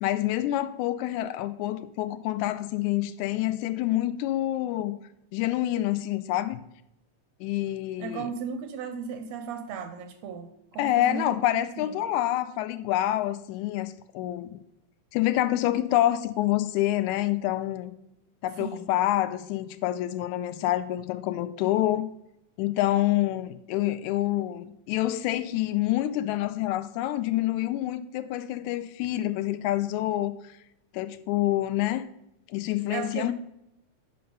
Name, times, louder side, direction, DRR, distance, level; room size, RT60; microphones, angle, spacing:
voice 1, 0.0-5.0 5.3-6.6 7.4-8.3 10.8-14.5 15.1-17.9 18.4-22.1 22.6-30.3 30.9-32.0 32.5-33.3, left 14 dB, 85° left, 11 dB, 1.9 m, -27 dB
voice 2, 8.0-11.4 11.8-11.9 18.6-18.9 32.9-33.3, right 6 dB, 80° right, 8 dB, 1.6 m, -35 dB
7.7 x 5.4 x 5.3 m, 0.81 s
omnidirectional pair, 3.4 m